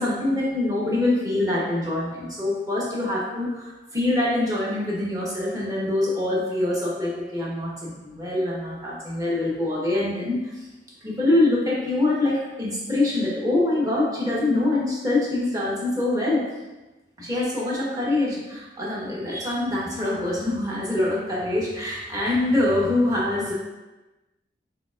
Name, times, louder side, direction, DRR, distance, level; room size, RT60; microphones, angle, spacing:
voice 1, 0.0-10.6 11.0-16.5 17.2-23.5, left 2 dB, 20° right, -5 dB, 1.1 m, -24 dB
4.9 x 4.1 x 2.5 m, 1.1 s
head